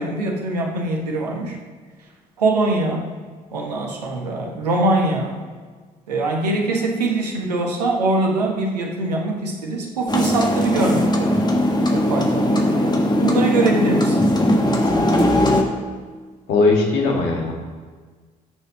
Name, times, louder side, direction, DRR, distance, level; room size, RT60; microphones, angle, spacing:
voice 1, 0.0-1.6 2.4-3.1 3.5-5.4 6.1-11.3 11.9-14.3 14.6-15.1, right 2 dB, 80° right, 1 dB, 1.2 m, -23 dB
sound 1, 10.1-15.6, left 1 dB, 20° left, 1.7 m, -19 dB
voice 2, 16.5-17.5, left 3 dB, 60° left, 0 dB, 2.1 m, -18 dB
12.0 x 6.7 x 5.3 m, 1.5 s
figure-of-eight pair, 50°, 20 cm